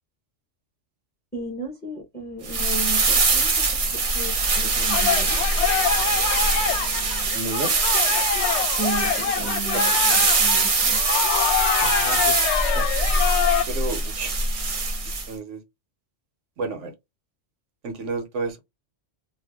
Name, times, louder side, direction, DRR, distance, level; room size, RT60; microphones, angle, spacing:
voice 1, 1.3-3.8 4.1-5.4 8.8-11.0, right 3 dB, 10° left, 0.5 m, -34 dB
sound 1, 2.4-15.3, right 3 dB, 45° right, 0.5 m, -23 dB
sound 2, 4.9-13.6, left 8 dB, 70° left, 0.8 m, -25 dB
voice 2, 7.3-7.7 9.7-9.8 11.8-12.4 12.7-12.9 13.7-14.3 15.0-15.6 16.6-16.9 17.8-18.6, right 3 dB, 80° right, 1.1 m, -31 dB
2.5 x 2.2 x 3.4 m
omnidirectional pair, 1.3 m